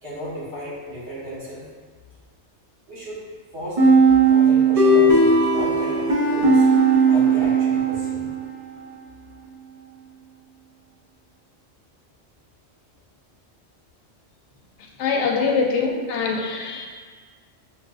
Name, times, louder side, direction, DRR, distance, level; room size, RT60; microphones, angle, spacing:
voice 1, 0.0-1.7 2.9-3.2 3.5-4.0 4.3-6.7 7.1-8.3 15.3-15.4, equal, 80° right, -9 dB, 1.6 m, -34 dB
sound 1, 3.8-8.4, right 3 dB, 45° right, 0.5 m, -17 dB
voice 2, 15.0-16.9, left 4 dB, 85° left, 0 dB, 0.9 m, -23 dB
5.8 x 2.5 x 2.3 m, 1.5 s
omnidirectional pair, 1.2 m